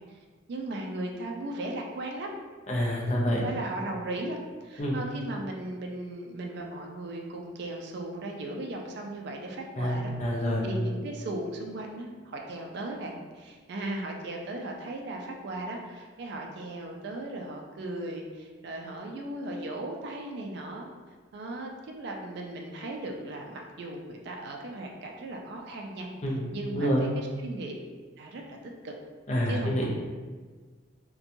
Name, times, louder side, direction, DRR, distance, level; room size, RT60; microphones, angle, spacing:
voice 1, 0.5-2.3 3.3-10.1 10.6-20.9 21.3-27.8 28.2-28.6 28.8-28.9 29.5-29.9, right 2 dB, 55° right, 1 dB, 0.3 m, -37 dB
voice 2, 2.7-3.4 4.8-5.0 9.8-10.7 26.2-27.1 29.3-29.9, equal, 35° left, -3 dB, 0.4 m, -27 dB
2.8 x 2.2 x 2.5 m, 1.4 s
head